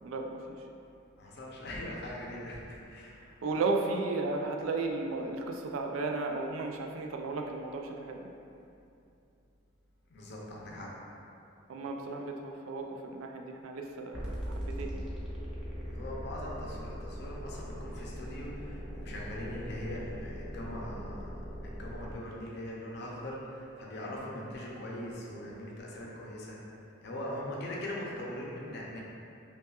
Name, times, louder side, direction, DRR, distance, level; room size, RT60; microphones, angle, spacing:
voice 1, 0.0-0.5 3.4-8.3 11.7-15.1 15.7-15.8, right 3 dB, 85° right, 3 dB, 0.4 m, -34 dB
voice 2, 1.2-3.2 10.1-10.9 15.7-26.6 27.0-29.0, left 1 dB, 55° left, -4 dB, 0.6 m, -41 dB
sound 1, 14.1-22.1, equal, 5° right, 0.5 m, -40 dB
5.3 x 2.3 x 2.3 m, 2.6 s
head